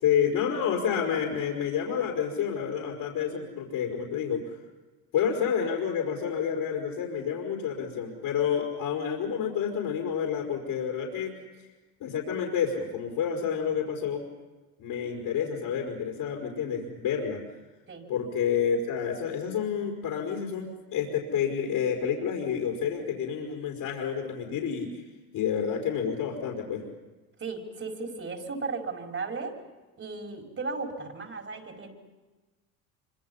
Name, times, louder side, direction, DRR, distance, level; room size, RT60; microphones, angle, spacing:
voice 1, 0.0-4.6 5.1-11.3 11.6-11.7 12.0-14.2 14.8-17.4 18.1-25.0 25.3-26.8, left 7 dB, 60° left, 0 dB, 5.0 m, -29 dB
voice 2, 27.4-29.6 30.0-31.9, right 4 dB, 35° right, 2 dB, 5.5 m, -35 dB
26.0 x 25.5 x 5.6 m, 1.2 s
hypercardioid pair, 75°, 39 cm